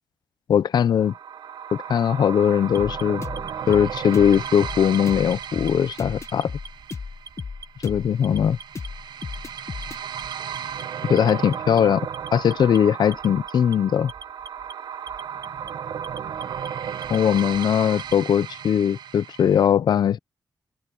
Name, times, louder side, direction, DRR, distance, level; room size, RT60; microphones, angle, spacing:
voice 1, 0.5-1.1 1.7-3.2 3.7-6.5 7.8-8.6 11.1-12.1 12.3-14.1 17.1-20.2, left 8 dB, 75° left, 0.7 m, -20 dB
sound 1, 1.0-19.7, right 8 dB, 85° right, 0.9 m, -35 dB
Alarm, 2.7-4.0 4.3-5.0 5.3-6.0 6.3-6.9 7.3-7.9 8.2-8.9 9.2-9.9 10.2-10.8 11.2-11.8 12.1-12.8 13.1-13.8 14.1-14.7 15.1-15.7 16.0-16.7 17.0-18.2, right 5 dB, 50° right, 1.9 m, -42 dB
sound 2, 2.8-10.0, left 5 dB, 40° left, 1.3 m, -35 dB
open air
wide cardioid pair, 105°, 7 cm